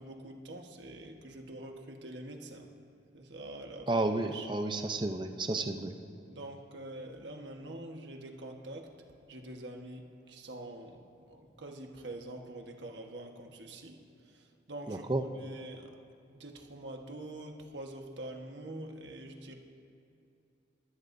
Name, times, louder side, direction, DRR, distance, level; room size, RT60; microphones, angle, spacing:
voice 1, 0.0-2.7 3.1-4.5 6.3-8.9 9.3-16.0 16.4-19.5, right 1 dB, 65° right, 2 dB, 1.4 m, -45 dB
voice 2, 3.9-5.9 14.9-15.2, right 2 dB, 25° right, 6 dB, 0.6 m, -31 dB
23.0 x 16.0 x 2.7 m, 2.7 s
head